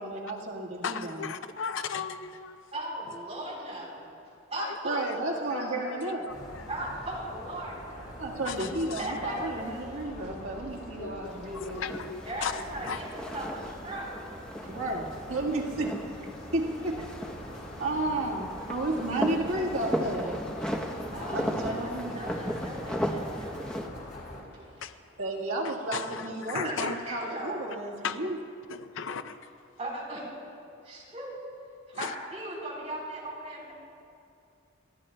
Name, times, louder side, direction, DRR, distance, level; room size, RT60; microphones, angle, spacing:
voice 1, 0.0-1.2 4.8-6.3 8.2-12.0 14.6-16.1 16.5-17.1 17.8-20.4 21.3-22.2 25.2-28.4, right 2 dB, 80° right, 1.6 m, -32 dB
voice 2, 0.8-2.6 4.5-6.7 8.4-9.1 11.0-11.1 11.5-13.0 24.8-25.2 25.6-27.0 28.0-28.3 28.7-29.5 31.9-32.2, left 6 dB, 60° left, 0.5 m, -37 dB
voice 3, 2.7-5.0 5.5-5.9 6.7-8.2 9.0-9.7 11.0-11.8 12.3-14.2 21.1-23.7 24.5-24.9 26.0-26.1 26.5-27.5 29.8-30.3 30.8-31.4 31.9-33.7, right 1 dB, 30° right, 4.0 m, -38 dB
sound 1, 6.3-24.4, left 1 dB, 40° left, 3.9 m, -44 dB
sound 2, 11.3-23.9, equal, 5° left, 0.8 m, -36 dB
29.0 x 13.5 x 2.2 m
head